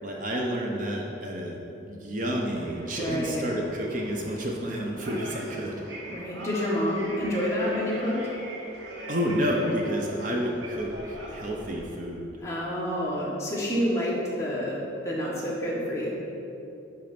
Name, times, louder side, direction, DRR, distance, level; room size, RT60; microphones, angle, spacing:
voice 1, 0.0-5.7 9.1-12.3, equal, 45° right, -1 dB, 0.8 m, -30 dB
sound 1, 2.5-11.9, right 1 dB, 70° right, 1.6 m, -42 dB
voice 2, 3.0-3.4 6.1-8.2 12.4-16.1, equal, 15° left, -6 dB, 1.6 m, -28 dB
10.5 x 4.1 x 5.9 m, 3.0 s
head